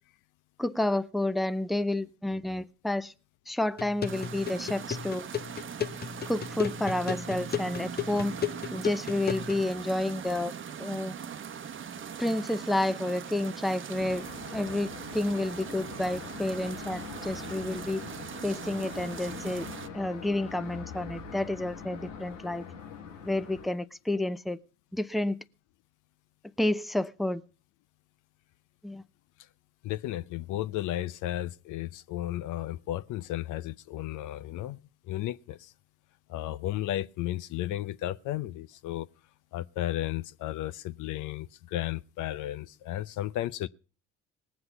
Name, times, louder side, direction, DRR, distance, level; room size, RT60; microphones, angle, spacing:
voice 1, 0.6-3.1 3.5-5.3 6.3-8.4 8.7-10.5 10.8-11.2 12.2-14.3 14.5-18.0 18.4-19.7 19.9-22.6 23.2-24.6 24.9-25.4 26.6-27.4 28.8-29.0, left 1 dB, ahead, 0.6 m, -30 dB
sound 1, 3.8-9.6, left 8 dB, 25° left, 1.0 m, -35 dB
sound 2, 4.0-19.9, right 7 dB, 35° right, 1.0 m, -41 dB
sound 3, 13.9-23.7, left 6 dB, 90° left, 1.2 m, -43 dB
voice 2, 29.8-34.8 35.1-35.7 36.3-39.1 39.5-43.7, left 14 dB, 55° left, 0.7 m, -34 dB
19.5 x 7.9 x 5.4 m
hypercardioid pair, 55°, 36 cm